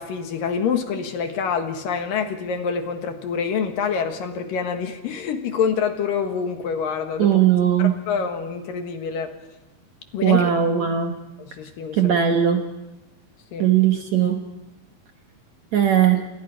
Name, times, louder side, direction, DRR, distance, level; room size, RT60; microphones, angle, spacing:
voice 1, 0.0-7.3 7.8-9.3 10.1-10.4 11.6-12.1 13.5-13.7, left 6 dB, 65° left, 6 dB, 3.1 m, -26 dB
voice 2, 7.2-8.0 10.2-11.1 11.9-12.7 13.6-14.5 15.7-16.3, right 9 dB, 65° right, 4 dB, 1.9 m, -19 dB
28.0 x 27.0 x 4.9 m, 1.0 s
omnidirectional pair, 4.4 m